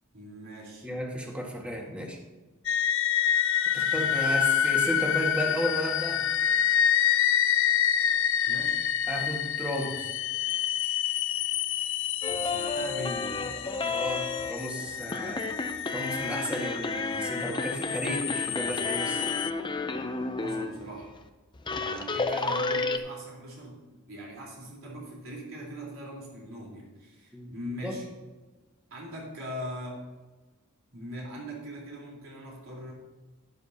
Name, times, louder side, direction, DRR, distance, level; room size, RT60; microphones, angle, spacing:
voice 1, 0.1-0.9 8.4-8.8 12.2-13.4 20.4-21.1 21.8-23.8 24.1-28.1 28.9-30.0 30.9-32.9, equal, 70° right, -4 dB, 3.9 m, -40 dB
voice 2, 0.8-2.2 3.7-6.2 9.1-10.1 13.8-15.5 15.9-19.2 27.3-27.5 27.8-28.0, equal, 5° right, -1 dB, 1.7 m, -33 dB
sound 1, 2.7-19.5, left 9 dB, 65° left, 0.5 m, -28 dB
sound 2, 12.2-20.8 21.2-21.3 21.5-23.0, left 3 dB, 20° left, 0.6 m, -32 dB
11.5 x 11.5 x 2.9 m, 1.2 s
head